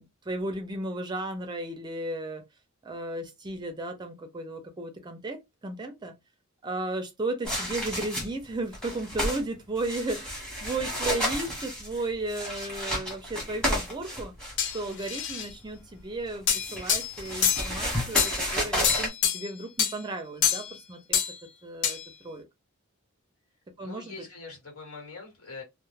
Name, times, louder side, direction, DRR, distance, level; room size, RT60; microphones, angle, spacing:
voice 1, 0.0-2.4 2.8-6.1 6.6-14.3 14.7-21.2 21.6-22.0 22.2-22.5 23.8-24.2, right 2 dB, 20° right, 0.4 m, -34 dB
sound 1, 7.4-8.4 8.7-9.4 9.8-14.9 16.3-19.1, equal, 5° left, 0.9 m, -32 dB
sound 2, 14.6-15.5 16.5-17.7 18.2-18.4 18.8-19.5 19.8-20.0 20.4-20.8 21.1-21.4 21.8-22.1, left 8 dB, 55° left, 0.5 m, -26 dB
voice 2, 23.8-25.6, left 3 dB, 70° left, 1.3 m, -43 dB
2.2 x 2.0 x 3.1 m
head